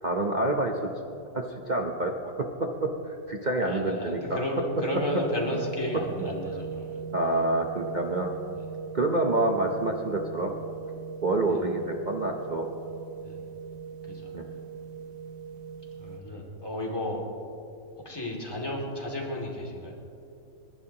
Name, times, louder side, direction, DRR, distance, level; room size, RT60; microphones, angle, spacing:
voice 1, 0.0-0.7 1.3-2.9 3.3-4.4 7.1-8.3 8.9-10.5 11.2-12.7 14.3-14.5, right 2 dB, 45° right, 2 dB, 0.6 m, -27 dB
voice 2, 3.6-7.0 8.6-8.7 11.5-11.7 13.2-13.4 14.1-14.3 16.0-17.2 18.0-20.0, left 1 dB, 15° left, -2 dB, 2.4 m, -33 dB
sound 1, 4.8-16.2, right 6 dB, 65° right, 1.5 m, -39 dB
30.0 x 11.0 x 2.9 m, 2.7 s
omnidirectional pair, 2.0 m